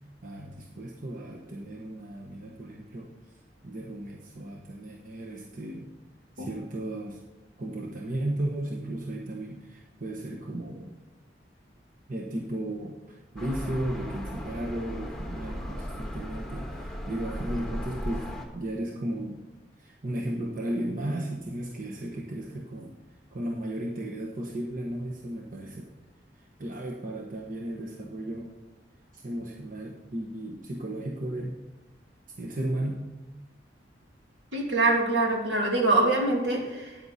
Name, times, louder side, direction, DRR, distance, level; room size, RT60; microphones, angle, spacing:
voice 1, 0.2-3.1 3.6-5.9 6.4-7.2 7.6-10.9 12.1-18.3 18.5-19.4 19.8-22.9 23.3-25.9 26.3-28.5 29.1-31.6 32.4-33.0, right 1 dB, 50° right, 0 dB, 1.1 m, -35 dB
sound 1, 13.4-18.4, equal, 5° left, 1.5 m, -36 dB
voice 2, 34.5-37.0, right 2 dB, 75° right, -1 dB, 2.7 m, -24 dB
13.0 x 9.5 x 4.2 m, 1.1 s
head